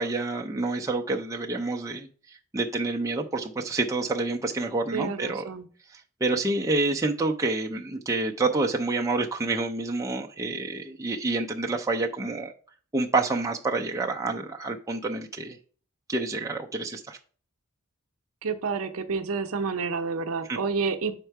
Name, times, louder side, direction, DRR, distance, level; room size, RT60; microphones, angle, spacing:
voice 1, 0.0-5.5 5.9-12.5 12.9-15.6 16.1-17.2 20.5-20.6, right 3 dB, 15° right, 1 dB, 0.4 m, -28 dB
voice 2, 4.9-5.7 18.4-21.1, right 5 dB, 70° right, 8 dB, 0.7 m, -29 dB
5.6 x 4.4 x 4.5 m, 0.43 s
head